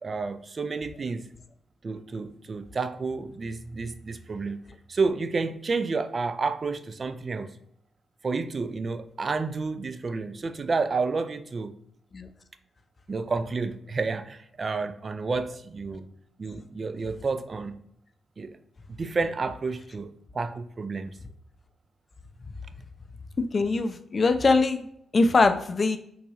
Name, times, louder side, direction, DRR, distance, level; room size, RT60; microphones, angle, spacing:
voice 1, 0.0-1.3 1.8-4.6 4.9-7.5 8.2-11.7 13.1-16.1 16.4-17.7 18.4-18.6 19.0-21.2, right 4 dB, 50° right, 10 dB, 0.3 m, -30 dB
voice 2, 23.5-24.9 25.1-26.0, left 3 dB, 45° left, 8 dB, 0.4 m, -22 dB
3.9 x 2.2 x 2.9 m, 0.73 s
hypercardioid pair, 40°, 0 cm